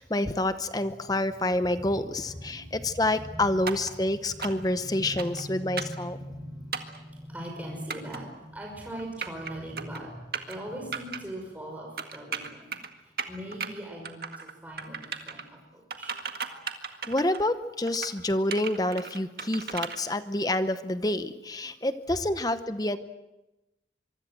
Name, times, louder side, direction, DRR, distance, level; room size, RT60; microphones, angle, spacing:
voice 1, 0.0-6.2 16.5-16.7 17.1-23.0, left 1 dB, 20° left, 11 dB, 0.8 m, -28 dB
voice 2, 1.4-3.5 3.9-4.0 4.3-12.7 13.3-16.2 22.8-22.9, equal, 10° right, -1 dB, 5.6 m, -41 dB
sound 1, 3.7-3.9 4.4-4.7 5.2-5.4 5.8-6.0 6.7-7.0 7.9-8.2 9.0-9.5 9.8-10.0 10.3-10.6 10.9-11.2 12.0-12.9 13.2-13.7 14.0-14.5 14.8-15.4 15.9-17.5 17.9-18.1 18.5-20.0, right 6 dB, 55° right, 1.9 m, -35 dB
25.5 x 24.0 x 7.8 m, 1.0 s
head